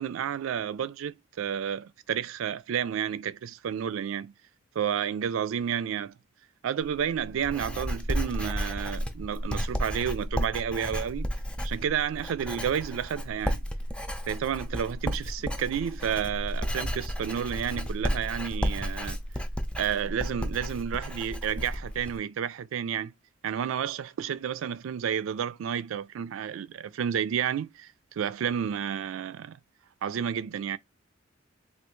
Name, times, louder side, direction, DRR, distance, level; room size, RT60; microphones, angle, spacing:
voice 1, 0.0-4.3 4.8-6.1 6.6-11.3 11.6-13.6 14.3-19.2 19.8-23.1 23.4-29.6 30.0-30.8, right 8 dB, 85° right, 0.3 m, -31 dB
Writing, 6.8-22.2, equal, 5° left, 0.4 m, -33 dB
3.3 x 2.3 x 3.0 m
head